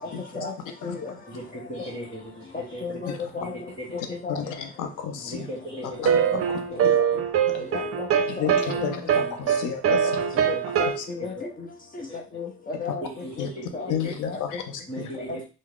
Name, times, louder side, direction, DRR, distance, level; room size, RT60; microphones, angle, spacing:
voice 1, 0.0-0.4 1.3-3.0 3.4-4.2 5.2-6.4 6.7-6.9 7.5-7.9 8.5-8.8 9.1-9.6 10.3-10.8 11.2-11.3 12.0-12.2 13.0-14.1 14.9-15.4, right 1 dB, 10° right, -7 dB, 1.6 m, -39 dB
voice 2, 0.8-1.2 2.8-3.6 4.1-4.6 6.3-6.4 6.7-7.2 7.7-8.1 8.4-8.7 9.9-10.1 10.5-11.7 11.9-13.1 13.7-13.9 14.2-14.4 15.1-15.4, left 4 dB, 30° left, 0 dB, 0.7 m, -34 dB
voice 3, 4.3-5.5 6.0-6.2 6.5-7.0 7.5-7.6 8.3-10.1 10.4-10.5 11.0-11.1 13.4-13.5 13.9-15.1, left 8 dB, 90° left, 7 dB, 0.7 m, -32 dB
sound 1, 6.0-11.0, right 8 dB, 50° right, 0.5 m, -23 dB
3.5 x 2.0 x 3.6 m, 0.32 s
cardioid pair, 90°, 30 cm